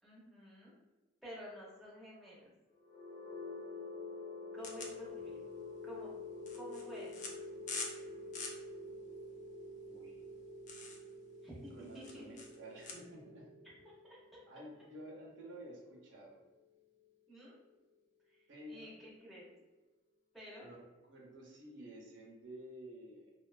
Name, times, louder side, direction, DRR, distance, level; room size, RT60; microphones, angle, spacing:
voice 1, 0.0-0.7 1.2-2.5 4.5-5.4 5.8-6.1 6.5-7.1 11.4-12.2 14.0-14.2 17.3-17.6 18.3-19.5 20.3-20.7, equal, ahead, -7 dB, 0.6 m, -51 dB
sound 1, 2.7-16.6, left 2 dB, 70° left, 0.7 m, -48 dB
sound 2, 4.6-12.9, left 4 dB, 40° left, 0.3 m, -47 dB
voice 2, 9.9-10.2 11.7-13.5 14.5-16.4 18.5-19.0 20.6-20.8 21.1-23.3, right 1 dB, 65° right, -2 dB, 0.6 m, -51 dB
2.4 x 2.2 x 2.4 m, 1.1 s
head